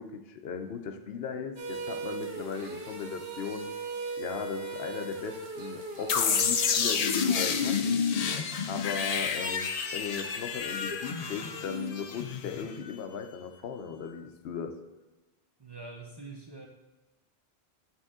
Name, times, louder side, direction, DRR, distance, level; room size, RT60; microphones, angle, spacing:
voice 1, 0.0-3.7 4.2-8.0 8.7-14.7, left 6 dB, 75° left, 6 dB, 0.8 m, -37 dB
sound 1, 1.6-6.7, right 3 dB, 75° right, 1.2 m, -38 dB
sound 2, 6.1-12.9, left 6 dB, 50° left, 0.5 m, -29 dB
voice 2, 15.6-16.7, right 3 dB, 30° right, 0 dB, 0.6 m, -44 dB
9.0 x 3.6 x 3.6 m, 1.1 s
omnidirectional pair, 1.0 m